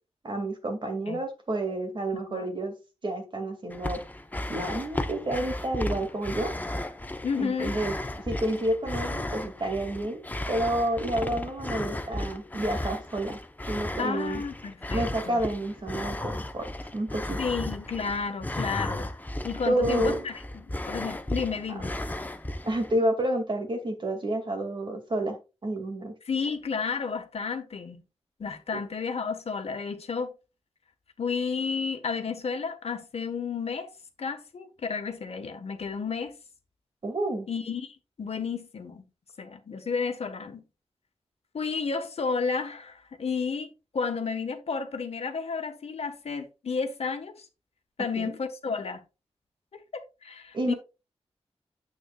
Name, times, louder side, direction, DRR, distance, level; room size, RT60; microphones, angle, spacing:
voice 1, 0.2-2.7 3.0-4.0 4.5-6.5 7.4-8.0 8.2-13.4 13.7-14.4 14.9-17.4 19.7-20.3 22.6-25.4 25.6-26.1 28.7-28.8 37.0-37.5 48.2-48.4 50.5-50.7, right 1 dB, 45° right, 2.3 m, -29 dB
sound 1, 3.7-23.0, left 1 dB, 15° left, 0.9 m, -35 dB
voice 2, 7.2-7.7 14.0-15.4 17.4-19.1 19.4-22.0 26.2-28.0 28.4-30.3 31.2-33.9 34.2-36.3 37.5-39.0 39.4-40.6 41.5-47.4 48.0-49.0 49.7-50.7, left 5 dB, 70° left, 1.4 m, -32 dB
9.5 x 8.1 x 2.4 m
wide cardioid pair, 110°, 11 cm